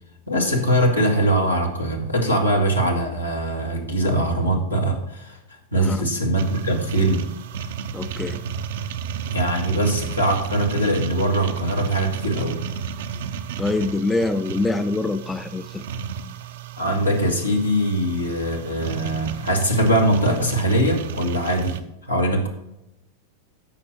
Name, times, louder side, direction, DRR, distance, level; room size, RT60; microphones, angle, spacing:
voice 1, 0.3-5.4 5.7-7.3 9.3-12.6 16.8-22.5, right 1 dB, 85° left, 0 dB, 2.0 m, -22 dB
voice 2, 5.7-6.1 7.9-8.4 13.6-15.8, left 2 dB, 10° left, 11 dB, 0.5 m, -24 dB
sound 1, 6.3-21.8, right 7 dB, 55° right, 0.6 m, -33 dB
13.5 x 6.0 x 3.1 m, 0.87 s
figure-of-eight pair, 90°, 0 cm